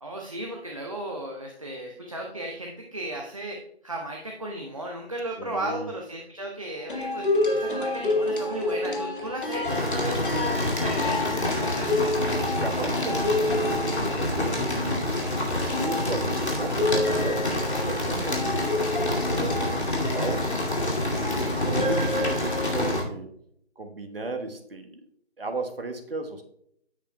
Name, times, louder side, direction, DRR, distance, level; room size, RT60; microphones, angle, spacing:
voice 1, 0.0-11.9, right 1 dB, 30° right, 0 dB, 0.8 m, -35 dB
voice 2, 5.4-5.9 12.4-15.1 15.6-20.5 21.0-23.3 23.8-25.0 25.4-26.4, right 2 dB, 55° right, 5 dB, 1.2 m, -35 dB
sound 1, 6.9-15.1 15.7-22.8, left 2 dB, 50° left, 1.5 m, -30 dB
sound 2, 9.6-23.0, left 1 dB, 75° left, 2.5 m, -27 dB
10.0 x 8.4 x 2.2 m, 0.70 s
figure-of-eight pair, 165°, 33 cm